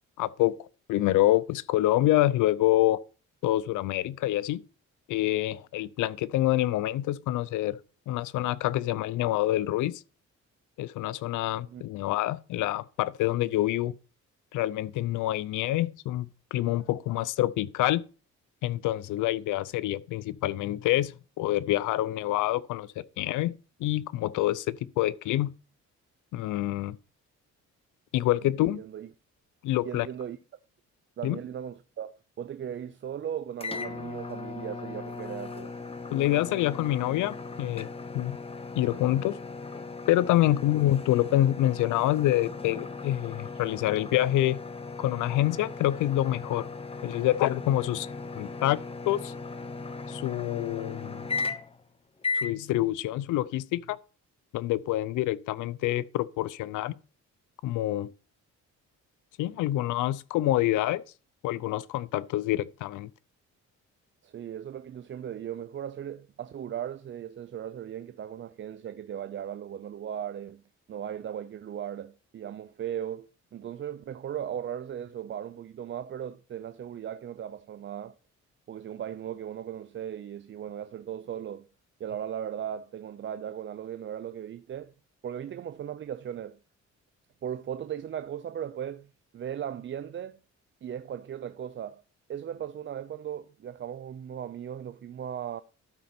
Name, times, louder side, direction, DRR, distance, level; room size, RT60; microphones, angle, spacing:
voice 1, 0.2-3.0 3.4-4.6 5.1-7.8 8.1-10.0 10.8-13.9 14.5-18.0 18.6-25.5 26.3-27.0 28.1-28.8 29.6-30.1 31.2-31.4 36.1-37.9 38.1-38.4 38.8-39.4 40.1-44.6 45.0-46.7 47.0-48.1 48.4-49.3 50.1-51.2 52.3-54.0 54.5-56.9 57.6-58.1 59.4-61.0 61.4-63.1, left 14 dB, 85° left, 0.5 m, -27 dB
voice 2, 28.7-29.1 29.8-30.4 31.2-35.8 40.4-40.6 64.2-70.6 70.9-78.1 78.7-81.7 82.0-84.9 85.2-86.6 87.4-89.1 89.3-90.4 90.8-92.0 92.3-95.6, right 9 dB, 40° right, 0.5 m, -37 dB
sound 1, 33.6-51.8 52.2-52.6, left 4 dB, 20° left, 0.9 m, -37 dB
12.5 x 5.2 x 4.3 m
cardioid pair, 90°, 30 cm